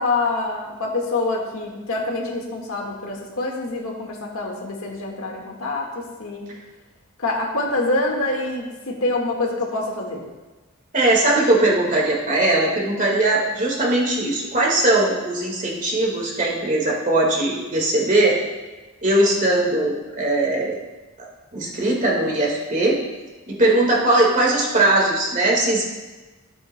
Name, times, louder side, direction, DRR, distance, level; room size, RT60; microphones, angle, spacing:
voice 1, 0.0-6.4 7.2-10.2, left 2 dB, 90° left, 0 dB, 1.7 m, -26 dB
voice 2, 10.9-18.4 19.0-20.8 21.2-23.0 23.5-25.8, right 2 dB, 40° right, -2 dB, 1.8 m, -20 dB
13.0 x 8.5 x 2.2 m, 1.2 s
head